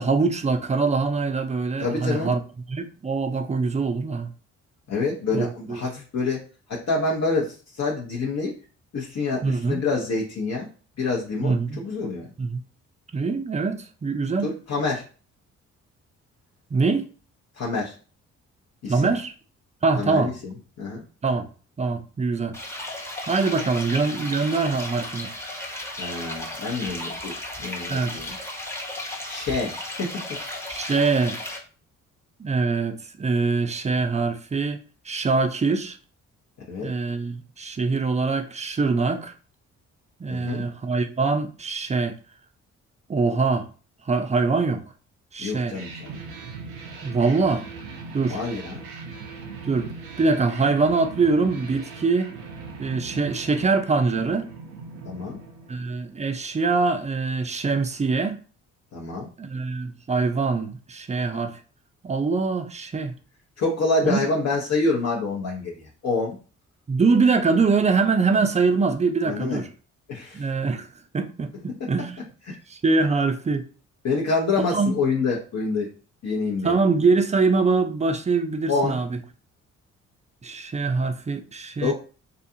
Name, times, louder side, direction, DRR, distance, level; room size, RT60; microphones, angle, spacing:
voice 1, 0.0-2.4 2.7-4.3 5.3-5.8 9.4-9.9 11.4-11.8 12.4-12.6 13.1-14.5 16.7-17.1 18.9-19.3 19.8-20.3 21.2-21.5 21.8-22.6 23.3-25.3 27.9-28.1 30.7-31.4 32.4-34.8 35.1-36.0 36.8-39.3 40.2-42.1 43.1-43.7 44.1-44.8 45.3-45.8 47.0-47.7 48.1-48.4 49.7-49.9 50.2-52.3 52.8-54.5 55.7-58.4 59.4-61.6 62.0-63.1 64.0-64.2 66.9-69.7 70.3-70.9 71.1-72.3 72.7-73.6 74.7-74.9 76.6-79.2 80.4-81.9, right 4 dB, 20° right, 0.4 m, -23 dB
voice 2, 1.8-2.3 4.9-6.4 6.7-8.5 8.9-10.7 11.0-12.3 14.4-15.0 17.6-17.9 18.8-19.1 20.0-21.0 26.0-28.4 29.3-29.7 30.0-30.4 36.6-36.9 40.3-40.7 45.4-46.2 48.2-48.8 55.0-55.4 58.9-59.3 63.6-66.4 69.2-69.6 70.1-70.4 72.5-72.6 74.0-75.9 76.2-76.8 78.7-79.0 81.8-81.9, left 3 dB, 50° left, 0.7 m, -27 dB
sound 1, 22.5-31.6, left 1 dB, 5° left, 0.8 m, -34 dB
sound 2, 45.7-56.3, right 4 dB, 90° right, 0.5 m, -39 dB
2.4 x 2.3 x 2.7 m
hypercardioid pair, 45°, 35 cm